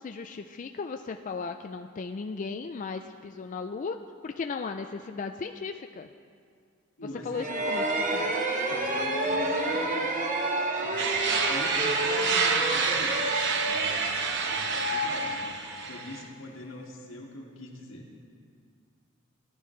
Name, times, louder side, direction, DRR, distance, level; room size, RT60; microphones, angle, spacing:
voice 1, 0.0-4.0 4.2-6.1 7.2-8.4, left 4 dB, 40° left, 6 dB, 0.3 m, -36 dB
voice 2, 7.0-7.5 8.7-10.1 10.8-13.3 13.7-18.1, left 1 dB, 85° left, -2 dB, 2.0 m, -43 dB
sound 1, 7.3-16.0, right 1 dB, 40° right, 1.1 m, -30 dB
sound 2, 11.0-16.2, right 5 dB, 60° right, 1.0 m, -28 dB
17.0 x 11.0 x 3.2 m, 2.2 s
head